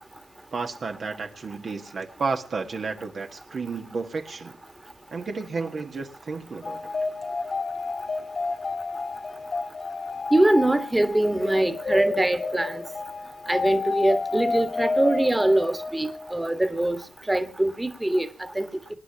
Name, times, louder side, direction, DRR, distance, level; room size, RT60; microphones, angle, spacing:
voice 1, 0.5-4.6 5.1-6.9, right 4 dB, 55° right, 1.4 m, -32 dB
sound 1, 6.6-16.4, left 3 dB, 45° left, 1.9 m, -30 dB
voice 2, 10.3-12.8 13.5-17.0 17.3-18.3 18.5-18.7, right 1 dB, 15° right, 1.7 m, -23 dB
26.0 x 9.7 x 2.9 m
supercardioid pair, 55°, 0 cm